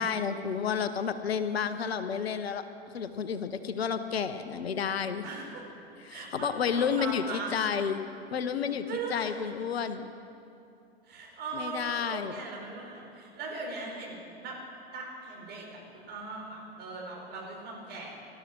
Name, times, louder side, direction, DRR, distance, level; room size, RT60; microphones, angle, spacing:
voice 1, 0.0-2.6 2.9-5.3 6.0-8.0 8.3-10.0 11.5-12.3, left 7 dB, 70° left, 10 dB, 1.0 m, -31 dB
voice 2, 5.2-5.6 6.1-7.9 8.8-9.3 11.0-14.6 14.9-18.1, right 3 dB, 30° right, -1 dB, 4.8 m, -39 dB
18.5 x 12.5 x 6.1 m, 2.7 s
figure-of-eight pair, 95°, 32 cm